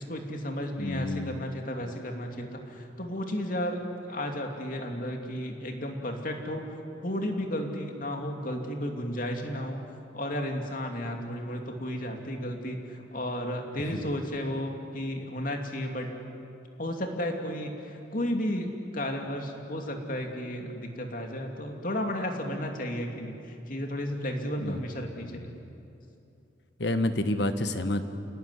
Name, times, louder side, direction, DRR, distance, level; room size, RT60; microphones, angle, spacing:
voice 1, 0.0-3.8 4.1-6.7 7.0-9.8 10.1-16.1 16.8-25.5, equal, 45° left, 3 dB, 2.8 m, -33 dB
voice 2, 0.8-1.5 13.9-14.0 24.6-24.8 25.2-25.4 26.8-28.0, left 1 dB, 60° left, 9 dB, 1.5 m, -29 dB
28.0 x 18.0 x 9.8 m, 2.7 s
head